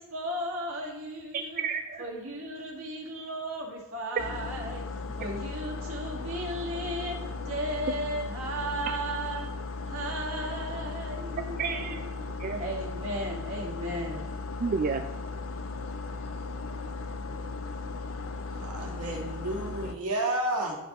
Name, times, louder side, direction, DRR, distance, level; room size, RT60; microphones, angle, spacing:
voice 1, 0.0-1.6 2.0-7.2 7.5-9.5 9.9-12.0 12.6-14.3, right 1 dB, 65° right, -2 dB, 1.8 m, -35 dB
voice 2, 1.3-2.1 8.9-9.0 11.6-12.6 14.6-15.1, right 5 dB, 40° right, 5 dB, 0.3 m, -32 dB
sound 1, 4.2-19.9, left 3 dB, 65° left, 0.5 m, -37 dB
voice 3, 18.5-20.8, right 1 dB, 85° right, -1 dB, 1.6 m, -31 dB
11.0 x 5.2 x 2.9 m, 1.1 s
head